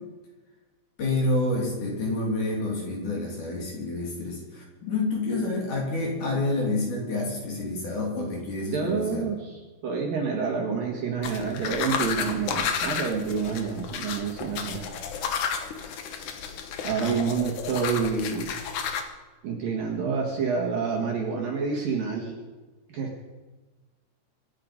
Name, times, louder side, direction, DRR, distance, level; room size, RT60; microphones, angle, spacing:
voice 1, 1.0-9.3 17.0-17.2, left 2 dB, 45° left, -2 dB, 4.2 m, -28 dB
voice 2, 8.7-14.9 16.8-18.5 19.4-22.4 22.9-23.1, right 5 dB, 55° right, 0 dB, 3.0 m, -28 dB
sound 1, 11.2-19.0, left 7 dB, 85° left, 1.7 m, -32 dB
25.5 x 9.9 x 5.3 m, 1.2 s
omnidirectional pair, 5.5 m